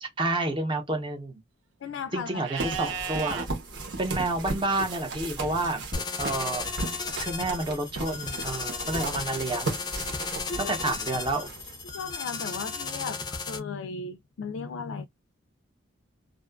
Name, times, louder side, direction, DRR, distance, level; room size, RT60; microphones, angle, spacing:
voice 1, 0.0-1.4 2.1-3.5 4.0-5.8 6.2-6.6 7.2-9.7 10.6-11.5, right 2 dB, 25° right, 0.7 m, -29 dB
voice 2, 1.8-2.5 8.8-9.5 10.5-10.7 11.9-15.1, left 5 dB, 75° left, 0.3 m, -36 dB
Livestock farm animals working animals, 2.4-3.5 6.3-7.3, right 7 dB, 85° right, 0.6 m, -36 dB
sound 1, 2.6-12.1, right 3 dB, 65° right, 1.0 m, -36 dB
sound 2, 5.9-13.6, left 4 dB, 20° left, 0.5 m, -35 dB
2.5 x 2.3 x 2.3 m
head